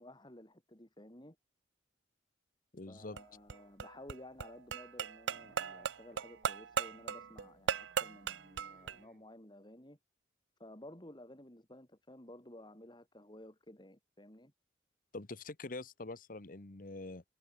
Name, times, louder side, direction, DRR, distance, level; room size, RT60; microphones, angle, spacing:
voice 1, 0.0-1.4 2.9-10.0 10.6-14.5, left 1 dB, 25° left, 3.5 m, -54 dB
voice 2, 2.7-3.2 15.1-17.2, left 2 dB, 50° left, 1.1 m, -45 dB
sound 1, 3.0-9.0, right 7 dB, 85° right, 0.6 m, -38 dB
sound 2, 5.3-9.3, right 1 dB, 55° right, 2.9 m, -66 dB
head